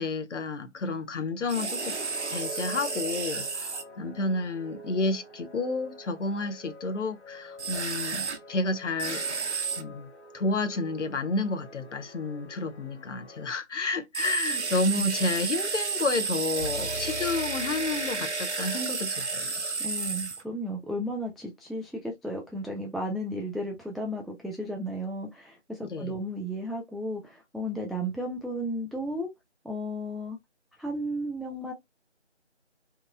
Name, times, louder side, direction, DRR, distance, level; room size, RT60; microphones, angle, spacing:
voice 1, 0.0-2.0 2.3-9.4 9.8-10.1 10.3-19.5 25.8-26.1, left 3 dB, 80° left, 0.6 m, -30 dB
sound 1, 1.5-3.8 7.6-8.4 9.0-9.8 14.1-20.4, right 4 dB, 70° right, 0.7 m, -31 dB
sound 2, 1.9-13.5, left 1 dB, 65° left, 1.0 m, -48 dB
sound 3, 16.6-18.7, left 1 dB, 40° left, 0.8 m, -41 dB
voice 2, 19.8-29.3 29.6-30.4 30.8-31.7, equal, ahead, 0.3 m, -34 dB
2.8 x 2.2 x 2.3 m
figure-of-eight pair, 165°, 36 cm